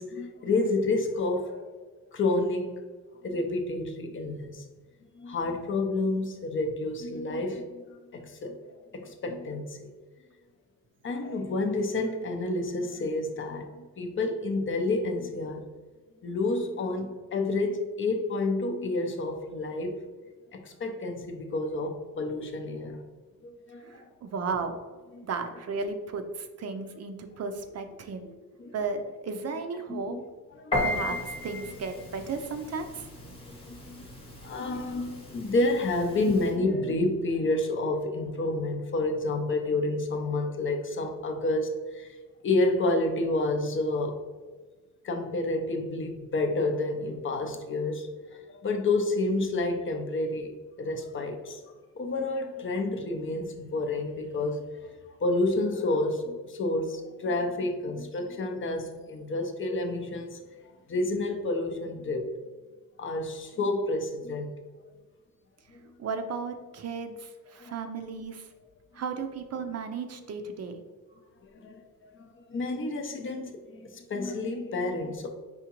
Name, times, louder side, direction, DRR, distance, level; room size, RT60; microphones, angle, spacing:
voice 1, 0.0-1.6 2.1-2.8 3.2-4.6 5.1-9.9 11.0-15.6 16.2-20.1 20.5-23.0 23.4-24.1 28.6-28.7 29.9-30.2 30.6-30.8 33.5-34.0 34.4-42.2 42.4-44.2 45.0-48.1 48.5-50.5 50.8-51.6 52.0-62.3 63.0-64.6 67.6-67.9 71.5-71.8 72.1-75.3, left 2 dB, 35° left, 5 dB, 0.5 m, -29 dB
voice 2, 23.8-24.8 25.2-28.3 28.7-30.2 30.8-33.1 65.7-68.5 68.9-70.8, right 4 dB, 45° right, 7 dB, 0.5 m, -35 dB
Piano, 30.7-36.6, left 1 dB, 15° left, 1.0 m, -35 dB
4.9 x 3.5 x 2.9 m, 1.4 s
cardioid pair, 155°, 35 cm